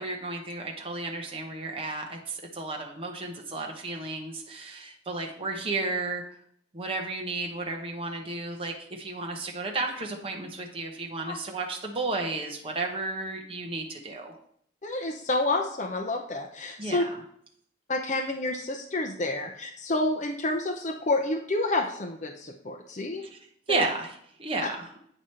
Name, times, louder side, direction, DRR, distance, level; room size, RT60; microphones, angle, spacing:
voice 1, 0.0-6.2 6.7-14.4 16.8-17.0 23.2-23.4 23.7-24.9, right 3 dB, 30° right, 1 dB, 0.9 m, -33 dB
voice 2, 14.8-17.0 17.9-23.2 23.7-23.9, left 2 dB, 40° left, 3 dB, 0.6 m, -29 dB
8.8 x 5.0 x 4.3 m, 0.66 s
head